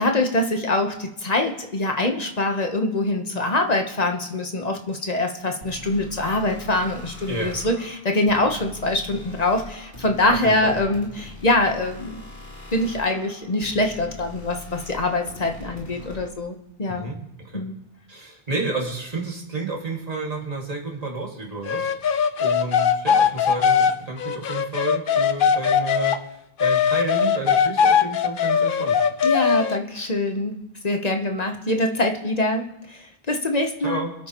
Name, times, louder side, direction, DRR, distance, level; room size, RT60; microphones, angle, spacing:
voice 1, 0.0-12.2 12.7-17.1 17.5-17.7 29.2-30.5 30.8-32.6 32.9-33.0 33.3-34.1, left 2 dB, 40° left, 4 dB, 1.1 m, -24 dB
sound 1, 5.6-16.3, left 2 dB, 90° left, 3.5 m, -42 dB
voice 2, 10.4-10.7 16.9-17.6 18.1-21.9 22.4-26.2 26.6-29.0 33.8-34.1, right 3 dB, 35° right, -1 dB, 2.2 m, -31 dB
sound 2, 21.7-26.2 26.6-29.8, left 7 dB, 60° left, 0.8 m, -20 dB
26.5 x 9.1 x 3.0 m, 0.86 s
omnidirectional pair, 1.1 m